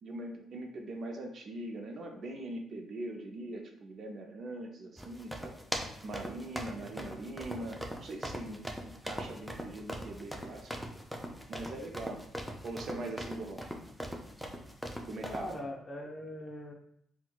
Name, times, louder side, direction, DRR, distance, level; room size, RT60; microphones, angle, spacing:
voice 1, 0.0-5.6 6.0-10.7 11.5-12.3 12.6-13.6 15.1-15.5, right 2 dB, 55° right, 3 dB, 0.5 m, -42 dB
sound 1, 5.0-15.5, equal, ahead, 0.4 m, -41 dB
voice 2, 6.8-7.1 15.3-16.7, left 1 dB, 35° left, 1 dB, 0.7 m, -41 dB
4.3 x 2.2 x 2.2 m, 0.70 s
cardioid pair, 85°, 0 cm